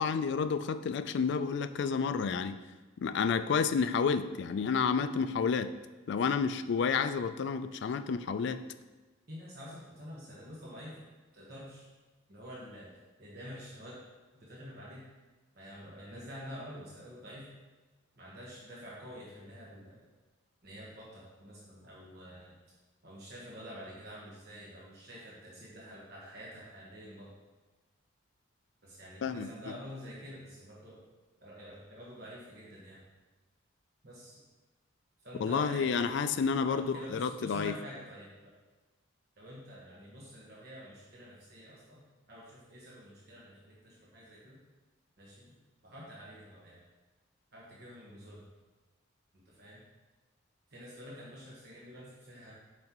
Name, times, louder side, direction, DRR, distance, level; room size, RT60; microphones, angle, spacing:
voice 1, 0.0-2.6 3.0-5.7 6.1-8.6 29.2-29.5 35.4-37.7, left 5 dB, 60° left, 11 dB, 0.3 m, -30 dB
voice 2, 9.3-11.0 11.3-11.9 12.3-12.9 13.2-14.0 14.3-15.0 15.5-17.5 18.2-20.0 20.6-22.6 23.0-27.3 28.8-31.0 31.4-33.0 34.0-34.4 35.2-36.4 36.6-38.5 39.4-42.0 42.3-44.6 45.2-45.5 45.8-46.8 47.5-48.5 49.3-49.8 50.7-52.5, equal, 50° right, -6 dB, 1.3 m, -48 dB
7.4 x 5.4 x 3.0 m, 1.3 s
head